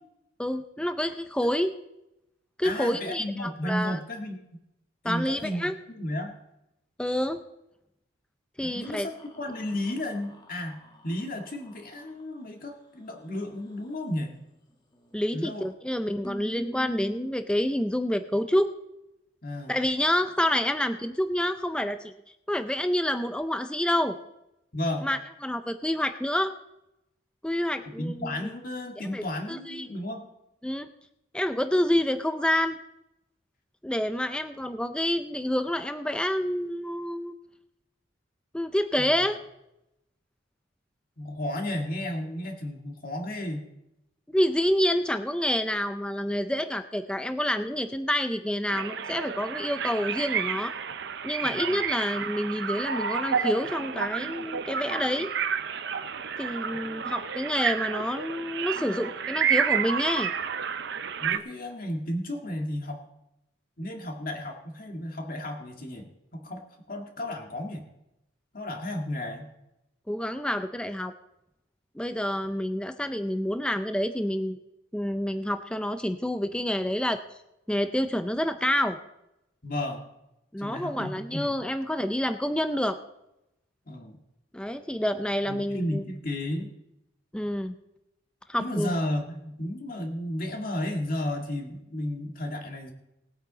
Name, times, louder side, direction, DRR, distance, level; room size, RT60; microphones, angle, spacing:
voice 1, 0.4-1.7 2.6-4.0 5.0-5.7 7.0-7.4 8.6-9.1 15.1-18.7 19.7-22.1 22.5-24.2 25.0-26.5 27.4-28.3 29.0-29.9 30.6-30.9 31.3-32.8 33.8-37.3 38.5-39.4 44.3-50.7 51.2-55.3 56.4-60.3 70.1-71.1 72.0-74.6 74.9-77.2 77.7-79.0 80.5-83.0 84.5-86.0 87.3-87.8 88.5-89.0, left 1 dB, 5° left, 9 dB, 0.4 m, -28 dB
voice 2, 2.6-4.4 5.0-5.6 5.9-6.3 8.6-14.3 15.3-15.7 19.4-19.8 24.7-25.1 28.0-30.2 39.0-39.3 41.2-43.6 51.4-51.8 56.7-56.9 58.8-59.1 61.2-63.0 63.8-67.9 68.5-69.5 79.6-80.0 80.6-81.5 83.9-84.2 85.5-86.7 88.6-92.9, left 1 dB, 45° left, 3 dB, 1.9 m, -33 dB
sound 1, 8.8-12.2 14.9-15.4 15.7-15.8 16.2-17.3, left 1 dB, 20° left, 1.2 m, -44 dB
sound 2, 48.7-61.4, right 7 dB, 55° right, 0.6 m, -30 dB
19.5 x 8.7 x 4.0 m, 0.87 s
head